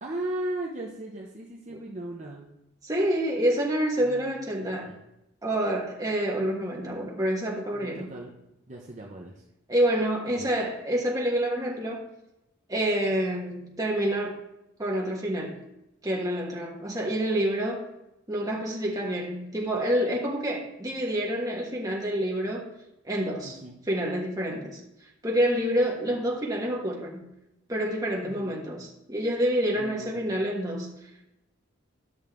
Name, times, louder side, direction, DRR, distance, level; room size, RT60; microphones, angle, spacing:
voice 1, 0.0-2.5 4.0-4.3 4.6-5.0 7.7-8.3 8.7-9.4 10.4-10.5 23.4-23.8 28.2-28.6 29.7-30.3, right 1 dB, 35° right, -2 dB, 0.8 m, -37 dB
voice 2, 2.8-4.9 5.4-8.1 9.7-12.1 12.7-14.4 14.8-15.6 16.0-17.9 18.3-22.7 23.0-23.6 23.9-24.8 25.2-27.3 27.7-30.9, right 1 dB, 15° right, -2 dB, 1.4 m, -27 dB
11.0 x 6.3 x 3.6 m, 0.90 s
head